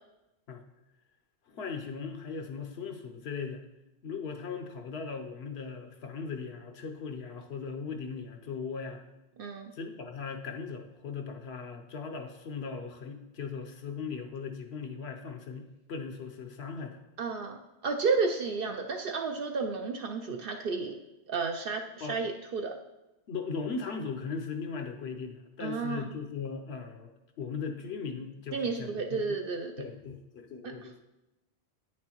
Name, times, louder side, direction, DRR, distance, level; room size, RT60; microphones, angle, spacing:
voice 1, 1.5-3.6 4.0-9.0 9.7-17.0 22.0-22.2 23.3-27.1 27.4-29.4 29.8-31.0, left 5 dB, 70° left, 4 dB, 0.9 m, -38 dB
voice 2, 9.4-9.7 17.2-17.6 17.8-20.9 21.3-22.7 25.6-26.1 28.5-29.7 30.6-30.7, right 4 dB, 60° right, 4 dB, 0.7 m, -32 dB
9.3 x 6.2 x 3.0 m, 0.98 s
omnidirectional pair, 1.1 m